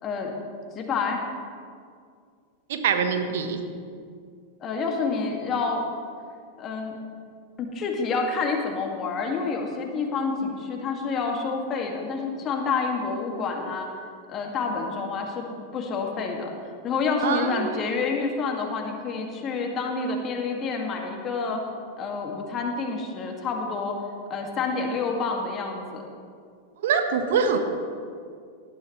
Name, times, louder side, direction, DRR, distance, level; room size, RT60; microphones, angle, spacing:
voice 1, 0.0-0.3 0.7-1.2 4.6-5.8 6.6-7.0 7.6-13.9 14.3-15.5 15.7-16.5 16.8-21.6 22.0-24.0 24.3-26.0, left 4 dB, 30° left, 2 dB, 2.1 m, -28 dB
voice 2, 2.7-3.6 17.2-17.8 26.8-27.6, right 6 dB, 55° right, 6 dB, 1.3 m, -24 dB
18.5 x 12.5 x 3.2 m, 2.2 s
figure-of-eight pair, 90°, 0 cm